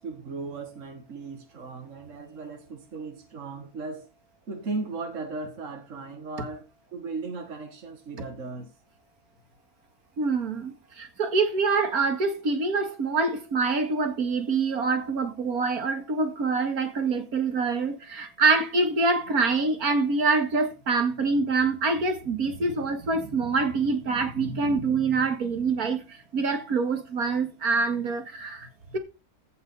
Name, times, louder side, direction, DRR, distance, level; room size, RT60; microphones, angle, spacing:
voice 1, 0.0-4.1 4.5-8.7, right 3 dB, 55° right, 2.1 m, -37 dB
voice 2, 10.2-29.0, right 4 dB, 90° right, 2.5 m, -25 dB
15.5 x 5.6 x 5.5 m
omnidirectional pair, 1.5 m